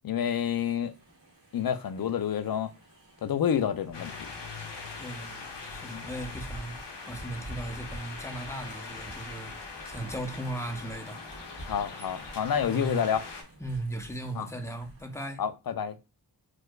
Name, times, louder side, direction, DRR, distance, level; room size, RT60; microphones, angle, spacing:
voice 1, 0.0-0.9 1.5-2.7 3.2-4.1 5.9-6.1 11.7-13.2 14.4-14.5 15.4-16.0, left 8 dB, 60° left, 0.5 m, -29 dB
sound 1, 0.6-15.2, right 1 dB, 55° right, 1.6 m, -49 dB
sound 2, 3.9-13.4, left 4 dB, 80° left, 0.8 m, -42 dB
voice 2, 5.0-11.2 12.6-13.0 13.6-15.4, right 1 dB, 5° left, 0.6 m, -37 dB
4.5 x 2.2 x 2.2 m
wide cardioid pair, 55°, 41 cm